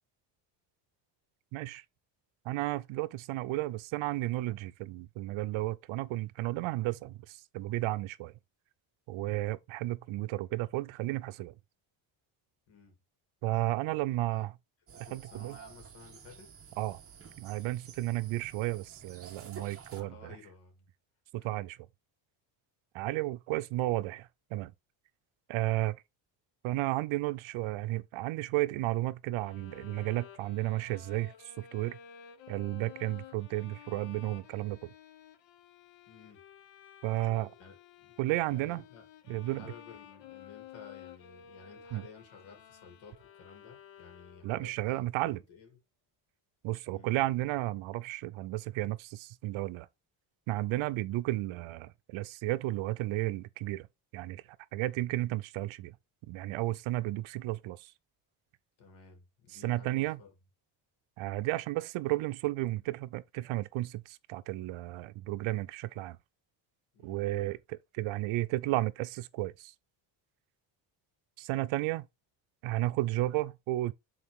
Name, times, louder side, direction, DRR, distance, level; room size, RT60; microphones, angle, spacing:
voice 1, 1.5-1.8 2.4-8.3 9.1-11.5 13.4-14.5 15.1-15.6 16.8-17.0 17.4-20.4 21.3-21.8 22.9-24.7 25.5-26.0 26.6-32.0 32.5-34.9 37.0-37.5 38.2-38.8 39.3-39.7 41.9-42.0 44.4-45.4 46.6-49.9 50.5-53.9 54.1-54.4 54.7-55.9 56.2-57.9 59.6-60.2 61.2-66.2 67.0-69.7 71.4-72.1 72.6-73.9, right 17 dB, 80° right, 0.7 m, -33 dB
voice 2, 13.8-14.5 15.0-16.5 19.8-20.9 21.4-21.6 36.1-36.4 37.6-45.8 46.9-47.3 58.8-60.3 66.9-67.2, left 5 dB, 85° left, 3.0 m, -54 dB
sound 1, 14.9-20.0, right 7 dB, 30° right, 1.2 m, -51 dB
Bowed string instrument, 29.4-44.7, left 9 dB, 65° left, 0.9 m, -53 dB
6.6 x 4.0 x 3.5 m
cardioid pair, 145°, 48 cm